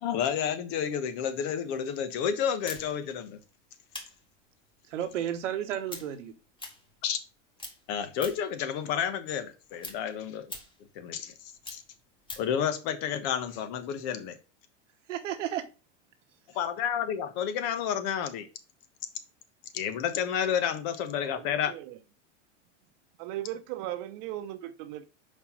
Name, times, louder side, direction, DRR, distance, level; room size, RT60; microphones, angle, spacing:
voice 1, 0.0-3.4 7.0-7.2 7.9-10.5 10.9-11.3 11.7-11.8 12.4-14.4 16.5-18.5 19.7-21.7, left 8 dB, 55° left, 1.3 m, -30 dB
sound 1, 2.6-7.3 7.6-8.6 9.0-12.6, left 2 dB, 15° left, 1.9 m, -44 dB
voice 2, 4.9-6.3 15.1-15.7, right 10 dB, 80° right, 1.2 m, -32 dB
voice 3, 21.2-22.0 23.2-25.0, right 13 dB, 50° right, 0.9 m, -38 dB
5.4 x 4.6 x 5.5 m
hypercardioid pair, 115°, 36 cm